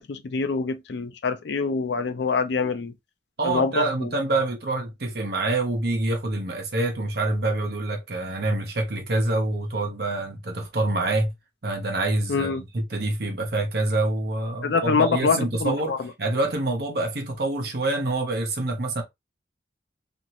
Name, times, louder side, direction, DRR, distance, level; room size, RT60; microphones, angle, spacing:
voice 1, 0.0-2.9 3.4-4.1 12.3-12.6 14.6-16.1, left 4 dB, 70° left, 0.5 m, -25 dB
voice 2, 3.4-11.3 11.6-19.0, right 2 dB, 55° right, 0.9 m, -26 dB
2.8 x 2.6 x 2.9 m
head